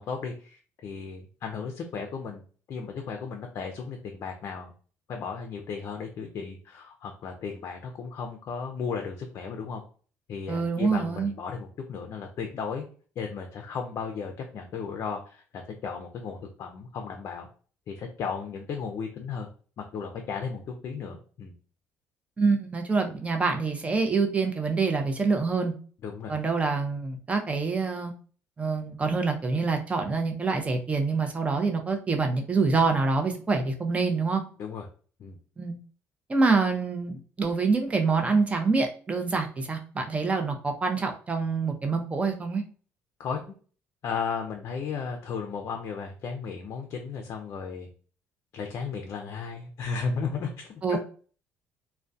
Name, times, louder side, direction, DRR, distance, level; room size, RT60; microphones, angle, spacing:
voice 1, 0.0-4.7 5.1-9.8 10.3-12.9 13.2-17.5 17.9-19.5 19.8-21.5 26.0-26.3 34.6-34.9 35.2-35.4 43.2-43.5 44.0-47.9 48.5-51.0, left 5 dB, 55° left, 3 dB, 0.4 m, -35 dB
voice 2, 10.5-11.3 22.4-25.7 26.3-28.1 28.6-34.4 35.6-35.8 36.3-42.6 50.8-51.0, right 4 dB, 25° right, 4 dB, 0.5 m, -26 dB
2.2 x 2.1 x 2.5 m, 0.40 s
cardioid pair, 100°, 6 cm